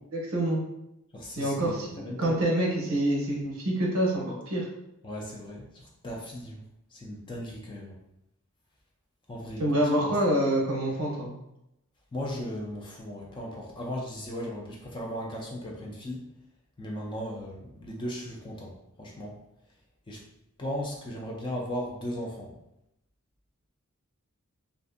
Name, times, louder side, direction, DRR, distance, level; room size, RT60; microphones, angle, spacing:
voice 1, 0.1-0.6 1.4-4.7 9.6-11.3, right 1 dB, 70° right, -1 dB, 0.7 m, -26 dB
voice 2, 1.1-2.4 5.0-6.6 6.9-7.9 9.3-9.6 12.1-16.2 16.8-18.7 19.0-19.4 20.1-20.2 20.6-22.5, equal, 20° left, -2 dB, 0.3 m, -37 dB
2.5 x 2.4 x 2.4 m, 0.85 s
head